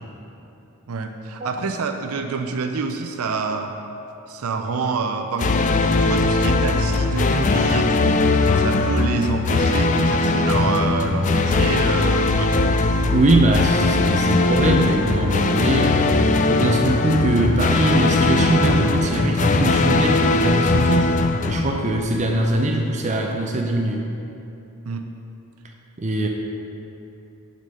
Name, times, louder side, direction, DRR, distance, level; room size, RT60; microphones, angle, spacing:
voice 1, 0.9-3.7 4.3-8.2 8.5-12.8 24.8-25.1, right 4 dB, 80° right, 5 dB, 0.5 m, -27 dB
sound 1, 5.4-22.4, left 3 dB, 35° left, 0.3 m, -20 dB
voice 2, 13.1-24.0 26.0-26.3, right 2 dB, 35° right, 2 dB, 0.5 m, -22 dB
8.1 x 5.3 x 5.5 m, 2.9 s
head